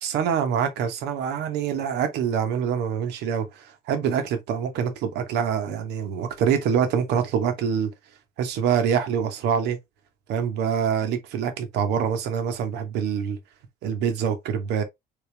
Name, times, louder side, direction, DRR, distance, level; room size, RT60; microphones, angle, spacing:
voice 1, 0.0-7.9 8.4-9.8 10.3-13.4 13.8-14.8, right 7 dB, 85° right, 1.2 m, -25 dB
3.9 x 3.6 x 3.4 m
cardioid pair, 110°, 17 cm